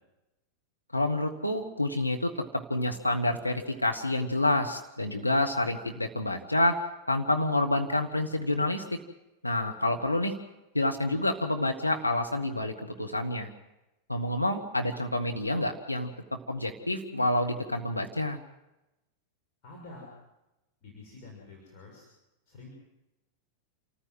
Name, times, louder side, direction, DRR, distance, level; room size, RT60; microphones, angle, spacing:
voice 1, 0.9-9.0 9.4-10.3 10.7-13.5 14.1-18.4, left 1 dB, 85° left, 3 dB, 1.3 m, -28 dB
voice 2, 19.6-20.2 20.8-22.1 22.5-22.7, left 3 dB, 40° left, -2 dB, 6.5 m, -48 dB
28.0 x 14.5 x 7.8 m, 0.96 s
figure-of-eight pair, 90°, 0 cm